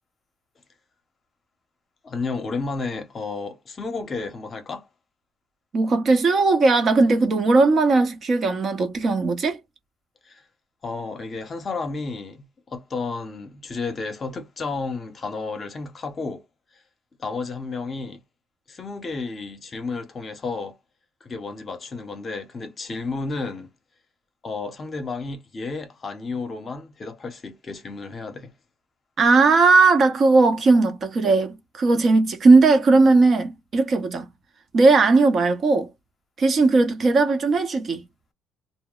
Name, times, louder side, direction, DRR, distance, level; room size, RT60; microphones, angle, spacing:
voice 1, 2.0-4.9 10.3-10.4 10.8-16.4 17.2-18.2 18.7-20.8 21.2-23.7 24.4-28.5, left 4 dB, 35° left, 0.8 m, -32 dB
voice 2, 5.7-9.6 29.2-34.3 34.7-35.9 36.4-38.0, right 3 dB, 45° right, 0.8 m, -18 dB
2.1 x 2.0 x 3.7 m
cardioid pair, 90°, 0 cm